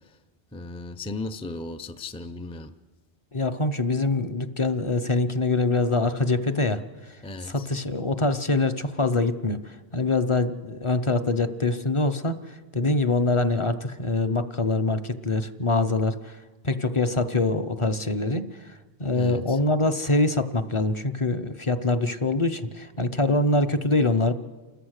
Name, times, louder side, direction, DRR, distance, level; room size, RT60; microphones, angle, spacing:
voice 1, 0.5-2.7 7.2-7.7 19.1-19.6, left 2 dB, 10° left, 8 dB, 0.3 m, -36 dB
voice 2, 3.3-6.8 7.5-12.4 12.7-16.4 16.6-18.4 19.0-24.3, left 2 dB, 30° left, 9 dB, 0.7 m, -24 dB
29.0 x 14.0 x 6.5 m, 1.3 s
omnidirectional pair, 1.2 m